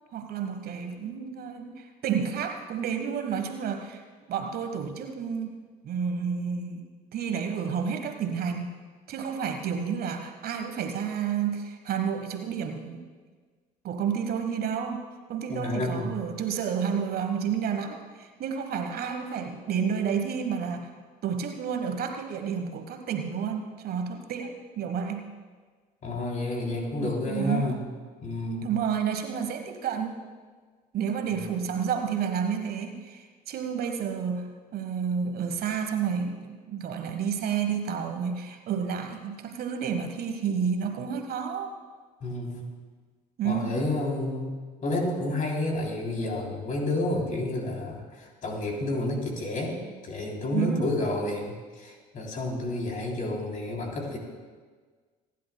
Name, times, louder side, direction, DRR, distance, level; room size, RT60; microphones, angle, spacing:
voice 1, 0.1-4.0 4.3-5.6 5.8-6.8 7.1-8.7 9.1-13.1 13.8-15.0 15.3-20.9 21.2-25.3 27.0-27.8 28.6-30.2 30.9-41.7 43.4-43.9 50.5-50.9, right 7 dB, 50° right, 6 dB, 1.3 m, -30 dB
voice 2, 15.5-16.2 26.0-27.8 28.2-28.7 31.3-31.4 42.2-42.6 43.4-44.5 44.8-54.2, left 2 dB, 40° left, 0 dB, 3.3 m, -30 dB
27.5 x 11.0 x 2.3 m, 1.5 s
hypercardioid pair, 65°, 21 cm